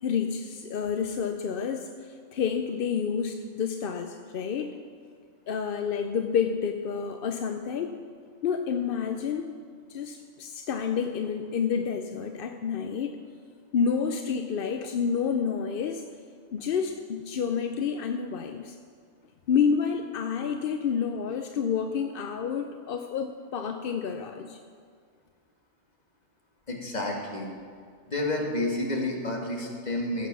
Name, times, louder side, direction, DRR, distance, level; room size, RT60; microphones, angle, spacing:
voice 1, 0.0-4.7 5.5-8.0 8.4-9.5 9.9-13.2 13.7-16.1 16.5-18.8 19.5-24.6, left 6 dB, 55° left, 6 dB, 0.6 m, -29 dB
voice 2, 26.7-27.5 28.1-30.3, left 1 dB, 30° left, 0 dB, 1.9 m, -30 dB
15.5 x 8.1 x 6.1 m, 2.1 s
omnidirectional pair, 1.4 m